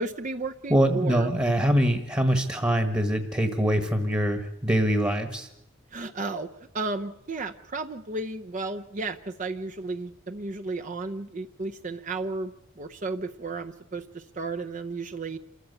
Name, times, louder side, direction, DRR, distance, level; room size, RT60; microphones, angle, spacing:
voice 1, 0.0-1.3 5.9-15.4, right 3 dB, 40° right, 6 dB, 0.7 m, -33 dB
voice 2, 0.7-5.5, equal, 15° right, 7 dB, 1.3 m, -24 dB
27.0 x 14.5 x 8.2 m, 0.87 s
head